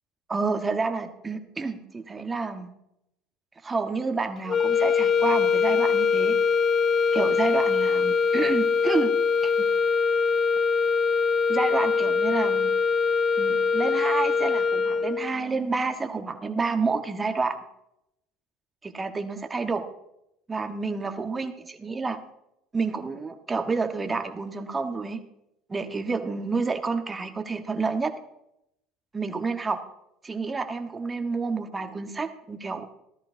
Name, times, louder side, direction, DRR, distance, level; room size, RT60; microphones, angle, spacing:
voice 1, 0.3-2.7 3.6-6.4 7.1-9.1 9.4-9.7 11.5-12.7 13.4-17.6 18.8-19.9 20.5-22.2 22.7-25.2 25.7-28.1 29.1-29.8 30.2-32.9, right 4 dB, 20° right, 7 dB, 1.3 m, -29 dB
sound 1, 4.5-15.4, left 5 dB, 45° left, 0.9 m, -23 dB
15.0 x 13.0 x 2.7 m, 0.82 s
hypercardioid pair, 70°, 0 cm